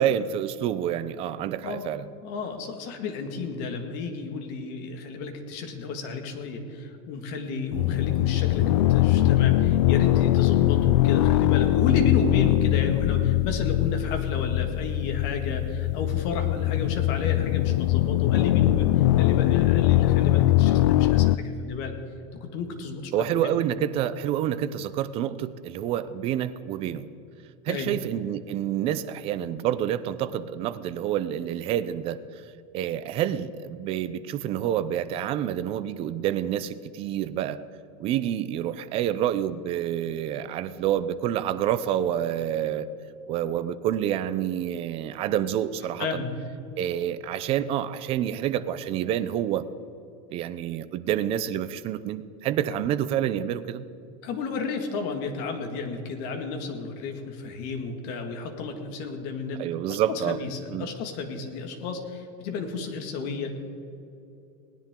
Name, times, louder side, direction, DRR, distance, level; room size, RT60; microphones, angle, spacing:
voice 1, 0.0-2.0 23.1-27.1 27.6-32.2 32.7-37.6 38.0-42.9 43.3-46.2 46.8-49.7 50.3-53.8 59.6-60.4 60.7-60.9, right 10 dB, 40° right, 13 dB, 0.6 m, -28 dB
voice 2, 2.2-21.9 22.4-23.1 23.4-23.5 27.7-27.9 46.0-46.4 54.2-59.6 60.1-63.6, left 4 dB, 55° left, 4 dB, 2.0 m, -32 dB
sound 1, 7.7-21.4, left 15 dB, 80° left, 0.5 m, -21 dB
19.0 x 10.5 x 3.8 m, 2.8 s
supercardioid pair, 150°, 15 cm